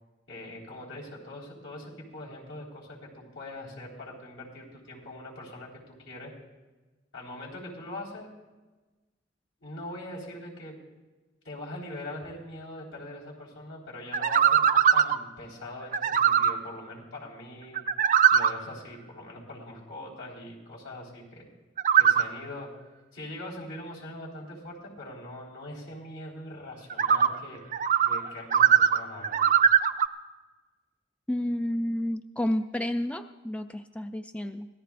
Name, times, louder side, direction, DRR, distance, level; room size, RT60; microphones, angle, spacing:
voice 1, 0.3-6.3 7.1-8.3 9.6-10.8 11.4-14.6 14.9-17.8 18.3-21.5 21.9-22.7 23.1-27.6 28.0-29.4, left 1 dB, 75° left, -3 dB, 4.3 m, -42 dB
sound 1, 14.1-15.2 15.9-16.5 17.8-18.5 21.8-22.2 26.9-27.3 27.7-28.2 28.5-30.1, right 8 dB, 45° right, 0.5 m, -21 dB
voice 2, 31.3-34.7, left 1 dB, 5° left, 8 dB, 0.4 m, -30 dB
24.5 x 17.5 x 2.5 m, 1.2 s
head